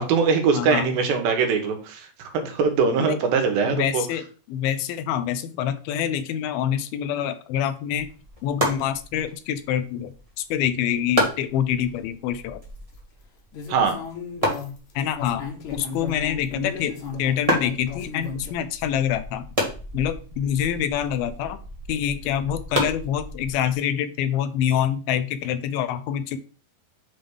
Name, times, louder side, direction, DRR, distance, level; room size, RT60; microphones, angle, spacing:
voice 1, 0.0-4.0 13.7-14.0, right 5 dB, 80° right, 5 dB, 2.9 m, -22 dB
voice 2, 0.5-1.0 3.0-3.2 3.6-8.1 8.4-12.6 15.0-15.5 15.7-16.9 17.2-19.4 19.9-21.6 21.9-26.4, left 9 dB, 85° left, 11 dB, 2.5 m, -26 dB
sound 1, 7.9-23.7, equal, 40° right, 0.5 m, -32 dB
sound 2, 8.7-8.9 13.5-18.5, left 6 dB, 60° left, 2.3 m, -34 dB
7.4 x 3.4 x 5.3 m, 0.38 s
omnidirectional pair, 4.2 m